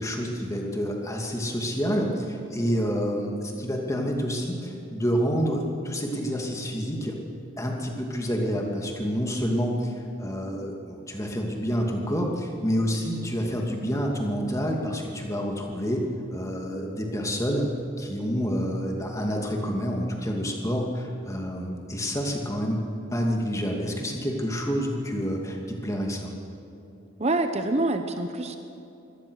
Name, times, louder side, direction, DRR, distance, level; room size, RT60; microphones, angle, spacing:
voice 1, 0.0-7.2 7.6-16.0 16.3-17.7 18.0-22.8 23.1-26.3, equal, 15° left, 0 dB, 2.6 m, -28 dB
voice 2, 27.2-28.6, right 2 dB, 30° right, 7 dB, 0.9 m, -26 dB
24.0 x 18.0 x 6.5 m, 2.8 s
head